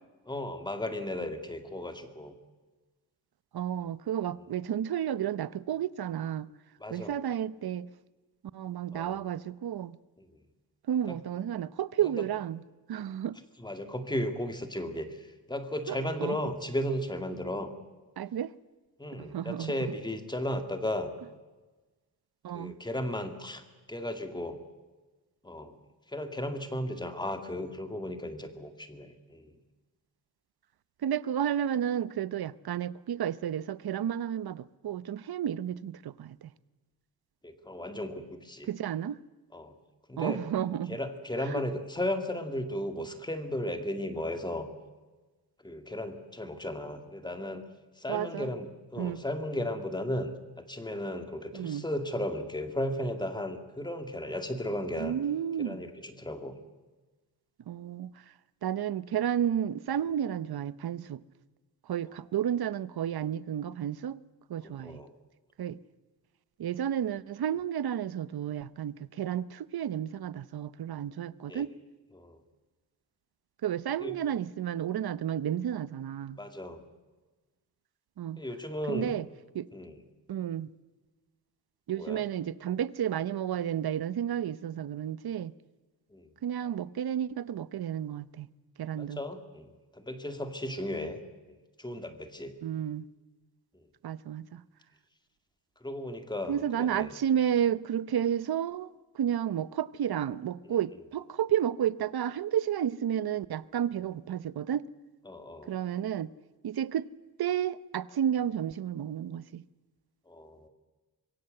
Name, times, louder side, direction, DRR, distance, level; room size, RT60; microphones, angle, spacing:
voice 1, 0.3-2.4 6.8-7.2 8.9-9.2 10.2-10.3 11.1-11.2 12.0-12.2 13.6-17.7 19.0-21.1 22.5-23.6 23.9-24.6 25.4-25.8 26.1-29.6 37.4-38.7 39.5-39.7 40.1-40.4 40.9-44.7 45.6-47.6 48.0-55.1 55.6-56.5 64.6-65.1 71.5-71.6 72.1-72.4 74.0-74.1 76.4-76.8 78.4-79.1 79.7-80.0 81.9-82.2 86.1-86.3 89.0-89.7 89.9-91.2 91.5-92.6 95.8-97.1 100.7-100.8 105.3-105.7 110.3-110.7, left 1 dB, 10° left, 2.2 m, -35 dB
voice 2, 3.5-6.5 6.9-7.9 8.5-10.0 10.9-12.6 12.9-13.4 15.9-16.4 18.2-18.5 19.2-19.9 22.4-22.7 31.0-36.5 38.6-39.2 40.2-41.0 41.5-41.6 48.1-48.5 49.0-49.2 51.5-51.8 55.0-55.8 57.7-58.1 58.6-61.2 61.9-64.2 64.5-65.0 65.6-65.8 66.6-71.7 73.6-76.4 78.2-78.4 78.9-79.3 79.5-79.7 80.3-80.7 81.9-85.5 86.4-88.5 88.8-89.2 92.6-93.1 94.0-94.6 96.5-104.9 105.6-106.3 106.6-107.1 107.4-109.6, right 10 dB, 60° right, 0.9 m, -32 dB
25.5 x 22.5 x 7.8 m
wide cardioid pair, 175°, 42 cm